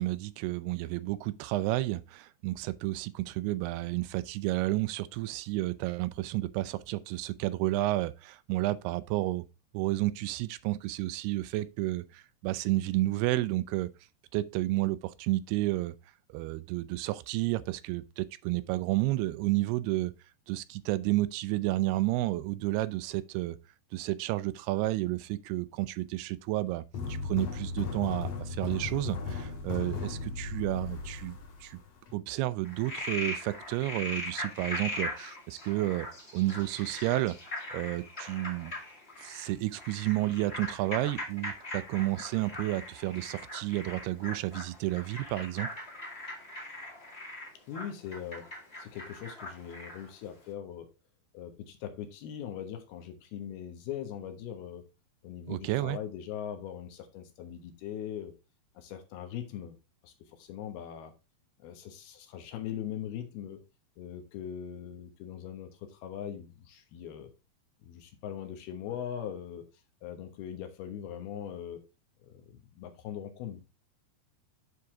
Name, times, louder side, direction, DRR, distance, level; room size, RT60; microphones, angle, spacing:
voice 1, 0.0-9.4 9.7-13.9 14.3-16.0 16.3-20.1 20.5-23.6 23.9-26.8 27.1-31.8 32.1-36.1 36.3-37.4 37.7-38.7 39.2-45.7 55.5-56.0, right 17 dB, 85° right, 2.5 m, -31 dB
sound 1, 26.9-32.1, left 4 dB, 55° left, 2.2 m, -36 dB
Frog, 32.6-50.1, left 1 dB, 30° left, 1.2 m, -40 dB
voice 2, 47.7-48.5 48.8-50.9 51.3-54.8 55.2-58.3 58.7-59.8 60.0-61.1 61.6-63.6 64.0-67.3 67.8-69.7 70.0-71.9 72.2-73.6, left 9 dB, 75° left, 3.1 m, -41 dB
9.6 x 4.8 x 3.7 m
omnidirectional pair, 4.6 m